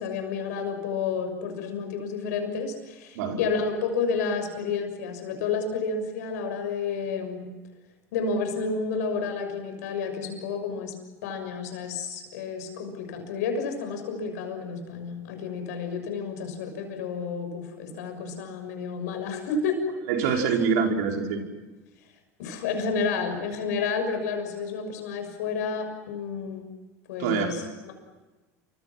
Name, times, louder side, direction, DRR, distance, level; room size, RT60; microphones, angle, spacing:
voice 1, 0.0-7.5 8.1-10.9 11.2-19.8 20.2-20.4 22.4-26.7 27.1-27.9, left 5 dB, 80° left, 6 dB, 6.5 m, -30 dB
voice 2, 20.1-21.4 27.2-27.7, right 5 dB, 75° right, 2 dB, 5.2 m, -25 dB
29.0 x 25.5 x 6.1 m, 1.2 s
hypercardioid pair, 90°, 9 cm